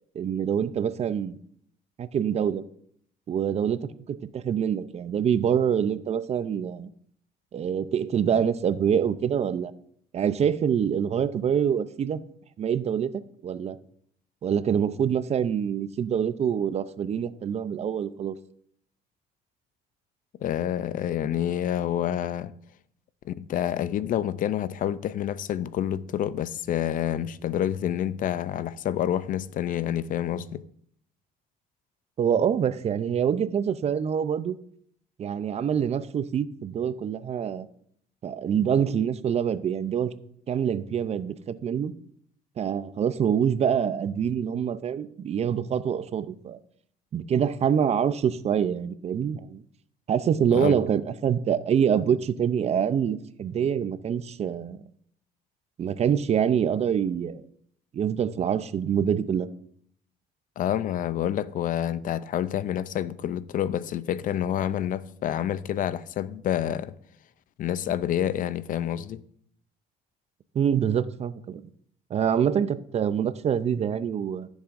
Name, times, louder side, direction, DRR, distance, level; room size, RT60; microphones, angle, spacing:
voice 1, 0.1-1.4 2.0-2.6 3.3-6.9 7.5-9.7 10.1-12.2 12.6-13.1 13.4-13.8 14.4-18.4 32.2-34.6 35.2-37.7 38.2-40.1 40.5-41.9 42.6-46.6 47.1-49.6 50.1-54.8 55.8-57.4 57.9-59.5 70.5-71.6 72.1-74.5, right 8 dB, 40° right, 0.5 m, -25 dB
voice 2, 20.4-22.5 23.2-30.6 50.5-50.8 60.6-66.9 67.6-69.2, left 11 dB, 55° left, 0.4 m, -28 dB
13.5 x 7.2 x 2.5 m
cardioid pair, 110°, 17 cm